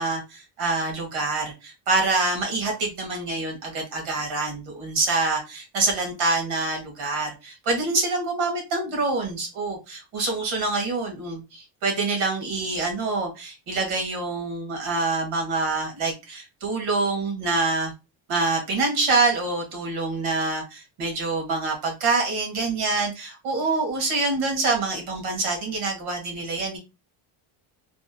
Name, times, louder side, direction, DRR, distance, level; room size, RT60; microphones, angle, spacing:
voice 1, 0.0-17.9 18.3-26.8, right 3 dB, 75° right, 1 dB, 1.6 m, -26 dB
3.4 x 2.5 x 2.6 m, 0.27 s
cardioid pair, 175°, 49 cm